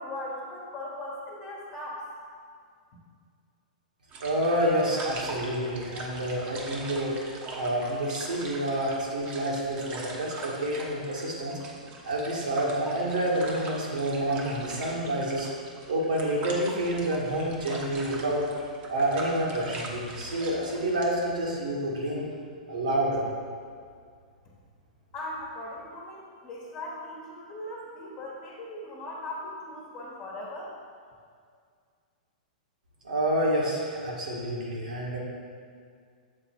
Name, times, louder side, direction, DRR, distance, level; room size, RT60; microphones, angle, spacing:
voice 1, 0.0-2.0 25.1-30.7, left 1 dB, 35° left, -6 dB, 1.3 m, -39 dB
sound 1, 4.1-21.1, right 2 dB, 35° right, 1.1 m, -42 dB
voice 2, 4.2-7.1 7.5-11.6 12.0-15.5 15.9-18.4 18.9-22.3 22.7-23.2 33.0-35.2, right 1 dB, 75° right, -4 dB, 1.7 m, -28 dB
7.5 x 4.0 x 4.5 m, 2.1 s
figure-of-eight pair, 105°, 4 cm